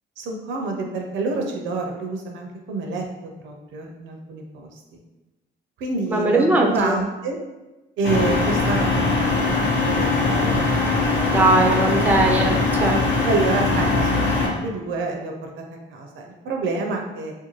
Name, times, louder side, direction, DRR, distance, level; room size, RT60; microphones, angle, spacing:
voice 1, 0.2-3.0 3.4-4.8 5.8-7.4 8.0-9.2 9.4-9.6 9.9-10.6 13.2-15.6 15.9-17.3, right 3 dB, 80° right, 2 dB, 0.5 m, -27 dB
voice 2, 6.1-7.0 11.3-13.0, right 2 dB, 10° right, 1 dB, 0.4 m, -20 dB
sound 1, 8.0-14.5, left 3 dB, 65° left, 0.7 m, -21 dB
2.5 x 2.2 x 3.1 m, 1.1 s
cardioid pair, 90°, 20 cm